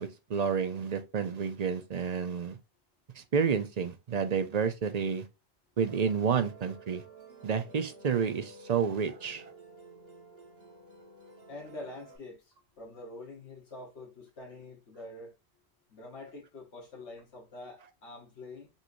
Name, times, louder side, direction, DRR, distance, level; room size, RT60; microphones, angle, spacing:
voice 1, 0.0-2.6 3.2-5.3 5.8-7.0 7.4-9.5, right 6 dB, 45° right, 0.7 m, -30 dB
Musical instrument, 5.8-12.2, right 2 dB, 65° right, 1.8 m, -52 dB
voice 2, 11.5-15.3 15.9-18.7, left 2 dB, 90° left, 1.4 m, -46 dB
5.5 x 3.1 x 2.6 m
omnidirectional pair, 1.1 m